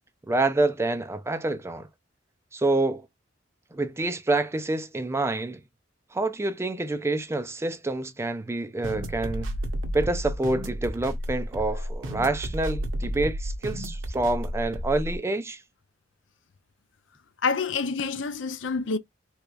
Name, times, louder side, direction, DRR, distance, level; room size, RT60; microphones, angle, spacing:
voice 1, 0.3-1.9 2.5-3.0 3.7-5.6 6.1-9.5 9.9-15.6, right 2 dB, 15° right, 0.3 m, -27 dB
sound 1, 8.8-15.2, equal, 80° right, 0.8 m, -32 dB
voice 2, 17.4-19.0, left 4 dB, 70° left, 0.5 m, -27 dB
3.4 x 3.1 x 2.3 m
head